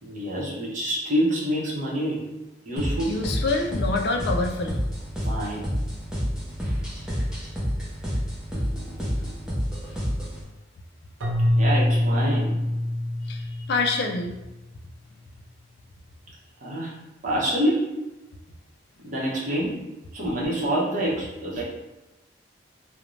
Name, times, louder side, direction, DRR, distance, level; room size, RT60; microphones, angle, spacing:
voice 1, 0.0-2.3 2.7-3.2 5.2-5.9 11.6-12.6 16.6-16.9 17.2-18.0 19.0-19.9 20.1-21.6, equal, 40° right, -6 dB, 0.7 m, -27 dB
sound 1, 2.8-10.4, equal, 5° right, 0.6 m, -29 dB
voice 2, 3.1-4.8 13.3-14.3, left 3 dB, 55° left, 3 dB, 0.3 m, -26 dB
Keyboard (musical), 11.2-14.3, left 1 dB, 80° right, 0.6 m, -24 dB
2.5 x 2.1 x 3.0 m, 1.0 s
head